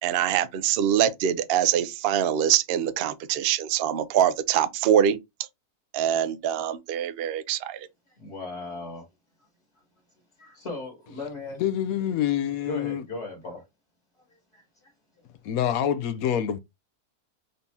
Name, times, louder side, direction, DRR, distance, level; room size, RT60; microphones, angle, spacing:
voice 1, 0.0-5.2 5.9-7.9, right 10 dB, 75° right, 0.5 m, -24 dB
voice 2, 8.2-9.1 10.4-11.6 12.6-13.6 14.5-14.9, left 3 dB, 50° left, 1.8 m, -37 dB
voice 3, 11.6-13.0 15.4-16.6, left 10 dB, 70° left, 1.0 m, -26 dB
4.0 x 2.7 x 3.5 m
omnidirectional pair, 1.6 m